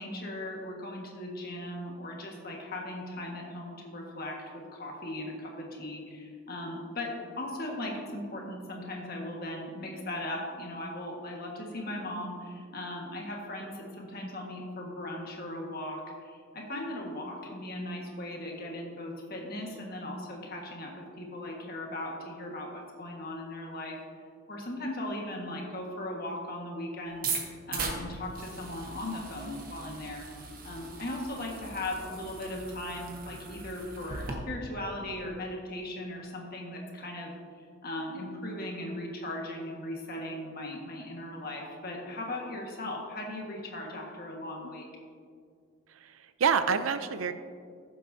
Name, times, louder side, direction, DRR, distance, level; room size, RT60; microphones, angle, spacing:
voice 1, 0.0-24.0 24.5-27.3 27.7-30.2 30.6-37.3 37.8-44.8, left 1 dB, 45° left, 0 dB, 1.6 m, -38 dB
sound 1, 27.1-34.3, right 4 dB, 45° right, 1.2 m, -39 dB
voice 2, 45.9-47.3, right 6 dB, 80° right, 11 dB, 0.5 m, -28 dB
14.5 x 7.6 x 2.7 m, 2.2 s
head